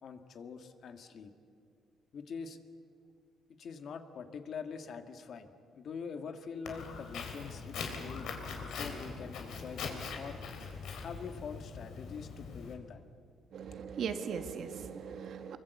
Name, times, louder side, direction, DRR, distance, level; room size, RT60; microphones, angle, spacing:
voice 1, 0.0-1.3 2.1-2.6 3.6-8.3 8.6-10.4 11.0-13.0, left 6 dB, 50° left, 7 dB, 1.7 m, -44 dB
Walk footsteps, 6.6-12.7, left 5 dB, 70° left, 3.8 m, -42 dB
voice 2, 13.5-15.6, right 6 dB, 55° right, 8 dB, 1.8 m, -39 dB
26.0 x 23.5 x 8.2 m, 2.4 s
cardioid pair, 155°, 0 cm